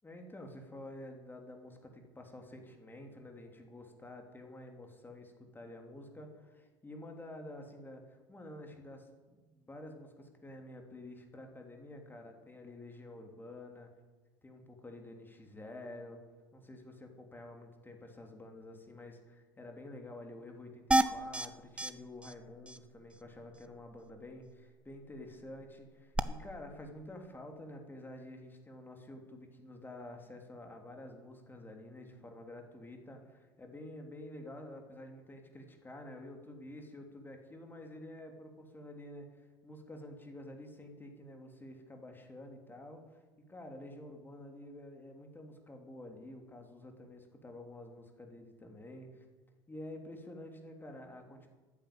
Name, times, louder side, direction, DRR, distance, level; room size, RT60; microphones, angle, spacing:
voice 1, 0.0-13.9 14.4-16.2 16.5-43.2 43.5-49.3 49.7-51.5, left 1 dB, 15° left, 3 dB, 3.1 m, -49 dB
sound 1, 20.9-21.5 21.8-21.9 22.2-22.3 22.7-22.8 26.1-26.2, right 2 dB, 10° right, 0.9 m, -28 dB
14.0 x 9.4 x 8.8 m, 1.3 s
figure-of-eight pair, 65°, 13 cm